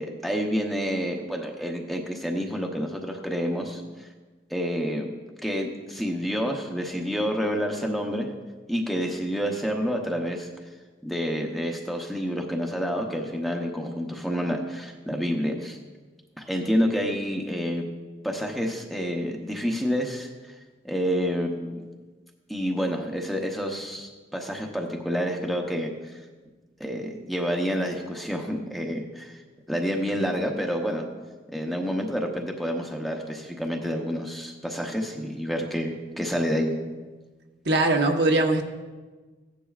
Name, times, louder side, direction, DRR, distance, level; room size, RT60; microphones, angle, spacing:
voice 1, 0.0-4.1 4.5-5.1 5.4-8.3 8.7-10.5 11.0-15.8 16.4-17.8 18.2-20.5 20.8-21.8 22.5-26.2 26.8-29.4 29.7-31.1 31.5-36.7, equal, ahead, 1 dB, 0.8 m, -28 dB
voice 2, 37.6-38.6, right 2 dB, 65° right, 3 dB, 1.0 m, -21 dB
15.5 x 10.0 x 2.4 m, 1.3 s
head